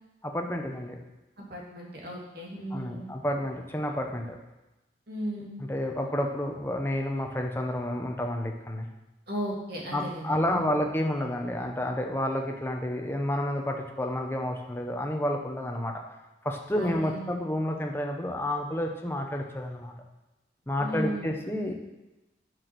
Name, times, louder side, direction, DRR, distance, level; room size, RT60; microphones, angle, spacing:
voice 1, 0.2-1.0 2.7-4.4 5.6-8.9 9.9-16.0 16.4-19.9 20.7-21.7, left 1 dB, 15° left, 2 dB, 1.0 m, -30 dB
voice 2, 1.5-3.1 5.1-5.6 9.3-10.9 16.8-17.3 20.8-21.3, equal, 55° right, -3 dB, 2.7 m, -35 dB
9.6 x 6.3 x 6.2 m, 1.0 s
head